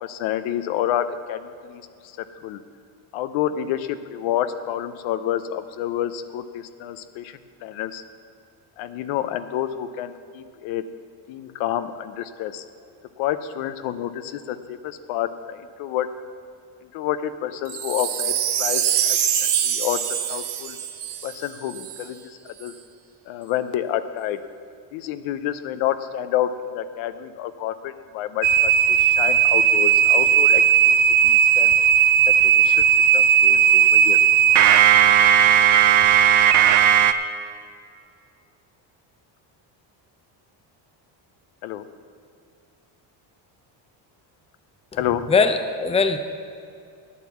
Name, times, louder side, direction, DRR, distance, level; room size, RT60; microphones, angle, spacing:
voice 1, 0.0-1.8 2.4-2.6 3.1-7.3 7.6-8.0 8.8-10.8 11.3-12.6 13.2-16.1 16.9-19.2 19.6-20.0 20.3-20.8 21.2-22.2 22.6-22.7 23.3-24.4 24.9-26.5 26.7-28.7 29.0-30.9 31.2-31.7 32.4-32.8 33.1-34.2 41.6-41.8 45.0-45.2, left 11 dB, 85° left, 11 dB, 0.7 m, -28 dB
Wind chime, 17.7-22.0 22.6-22.7, right 9 dB, 60° right, 1.0 m, -25 dB
sound 1, 28.4-37.1, right 9 dB, 45° right, 0.5 m, -16 dB
voice 2, 44.9-46.2, left 4 dB, 15° left, 7 dB, 0.6 m, -21 dB
9.3 x 8.3 x 7.1 m, 2.4 s
cardioid pair, 115°, 46 cm